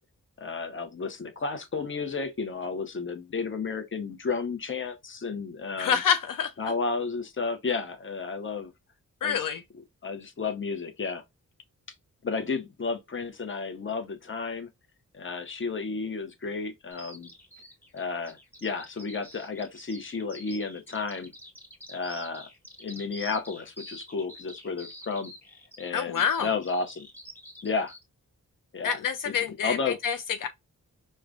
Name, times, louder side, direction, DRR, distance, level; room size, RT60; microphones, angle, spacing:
voice 1, 0.4-6.0 6.6-8.7 9.2-9.4 10.0-11.2 12.2-14.7 15.1-17.3 17.9-21.3 21.9-22.5 22.8-25.3 25.8-27.1 27.6-27.9 28.7-29.0 29.3-29.4 29.6-30.0, left 4 dB, 35° left, 0.7 m, -32 dB
voice 2, 5.8-6.5 9.2-9.6 25.9-26.5 28.8-30.5, left 7 dB, 75° left, 0.5 m, -27 dB
Bird vocalization bird call bird song, 16.9-28.0, equal, 5° left, 1.3 m, -47 dB
4.7 x 2.2 x 2.4 m
wide cardioid pair, 105°, 33 cm